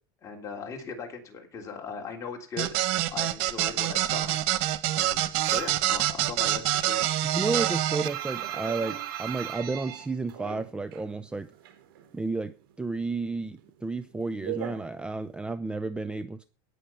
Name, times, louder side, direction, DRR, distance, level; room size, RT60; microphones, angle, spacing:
voice 1, 0.2-2.7 3.1-4.4 4.9-7.1, left 5 dB, 25° left, 1 dB, 3.3 m, -38 dB
sound 1, 2.6-8.1, right 14 dB, 60° right, 1.2 m, -26 dB
sound 2, 5.4-5.9 6.2-11.1 11.4-12.4 12.7-15.5, right 11 dB, 90° right, 4.3 m, -38 dB
voice 2, 7.2-11.5 12.1-16.5, right 3 dB, 10° right, 13 dB, 0.5 m, -32 dB
17.5 x 6.6 x 5.5 m, 0.37 s
supercardioid pair, 135°, 12 cm